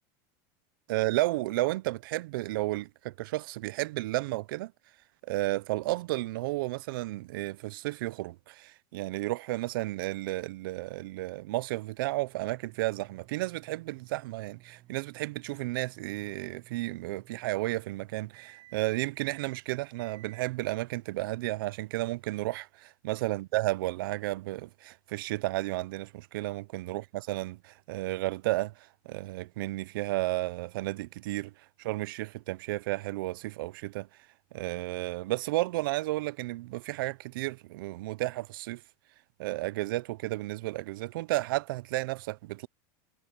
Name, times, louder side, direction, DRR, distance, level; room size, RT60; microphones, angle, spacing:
voice 1, 0.9-4.7 5.2-31.5 31.8-34.1 34.5-38.8 39.4-42.7, right 18 dB, 80° right, 0.5 m, -32 dB
sound 1, 11.9-22.2, right 16 dB, 45° right, 6.2 m, -58 dB
supercardioid pair, 145°, 11 cm